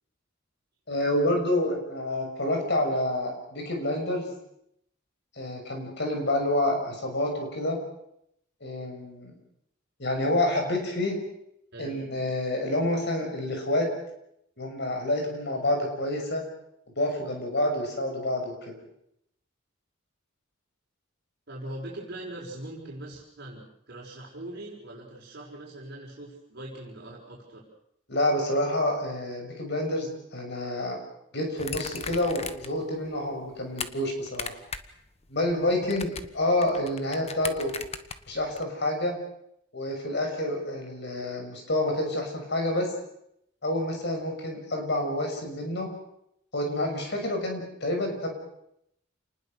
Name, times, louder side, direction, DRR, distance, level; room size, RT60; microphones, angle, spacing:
voice 1, 0.9-4.3 5.4-7.8 8.6-9.3 10.0-11.2 11.8-13.9 14.6-16.4 17.0-18.7 28.1-31.0 31.3-34.5 35.3-37.7 38.3-39.1 39.7-42.9 43.6-45.9 46.5-48.3, left 1 dB, 55° left, 3 dB, 6.6 m, -28 dB
voice 2, 21.5-27.6, right 1 dB, 55° right, -4 dB, 5.6 m, -41 dB
sound 1, 31.6-32.8 33.2-33.9 34.3-35.0 35.2-38.6, left 5 dB, 30° left, 1.3 m, -37 dB
28.5 x 20.0 x 6.6 m, 0.76 s
head